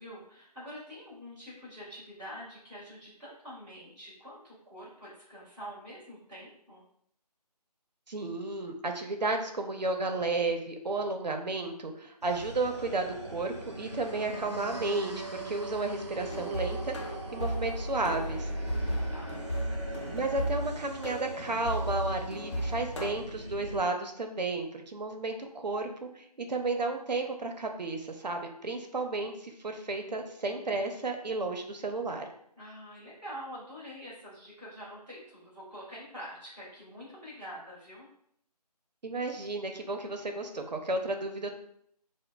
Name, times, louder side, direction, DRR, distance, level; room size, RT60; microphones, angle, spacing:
voice 1, 0.0-6.8 18.7-19.3 32.6-38.1, equal, 5° right, -17 dB, 1.3 m, -46 dB
voice 2, 8.1-16.9 17.3-18.5 20.1-32.3 39.0-41.5, right 2 dB, 85° right, 5 dB, 0.7 m, -33 dB
sound 1, 12.2-23.8, right 1 dB, 45° right, 0.7 m, -40 dB
sound 2, 16.2-23.1, equal, 45° left, 0.6 m, -35 dB
6.4 x 2.1 x 2.3 m, 0.70 s
figure-of-eight pair, 170°, 21 cm